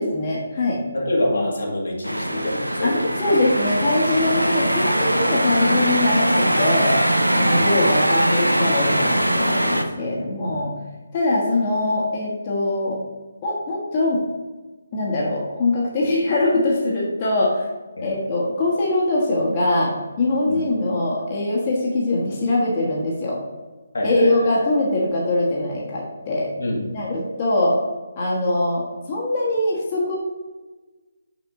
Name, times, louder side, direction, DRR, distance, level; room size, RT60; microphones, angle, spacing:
voice 1, 0.0-0.8 2.8-7.0 7.3-10.7 11.1-13.0 13.4-14.2 14.9-17.7 18.0-23.4 24.0-26.5 26.9-27.8 28.2-30.2, left 2 dB, 30° left, -5 dB, 1.4 m, -22 dB
voice 2, 0.9-3.4 4.6-4.7 7.4-7.9 10.0-10.5 18.0-18.1 20.5-20.6 23.9-24.5 26.6-27.1, left 1 dB, 60° left, -2 dB, 1.7 m, -26 dB
sound 1, 2.0-9.8, right 1 dB, 90° right, 0.7 m, -21 dB
6.1 x 5.8 x 3.7 m, 1.2 s
figure-of-eight pair, 145°, 0 cm